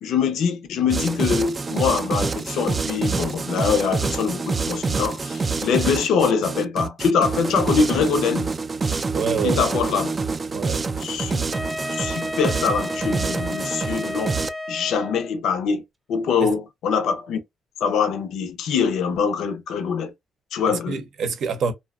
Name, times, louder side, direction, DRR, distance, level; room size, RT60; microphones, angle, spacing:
voice 1, 0.0-8.5 9.4-10.1 11.0-11.5 12.0-14.4 14.7-15.8 16.1-17.4 17.8-20.1 20.5-21.0, left 6 dB, 80° left, 0.5 m, -23 dB
sound 1, 0.9-14.5, right 4 dB, 30° right, 0.3 m, -26 dB
voice 2, 9.1-9.6 10.5-10.8 16.4-16.5 20.7-21.7, right 5 dB, 65° right, 0.7 m, -26 dB
Wind instrument woodwind instrument, 11.5-15.4, left 1 dB, ahead, 0.7 m, -32 dB
2.6 x 2.1 x 2.3 m
cardioid pair, 90°, 0 cm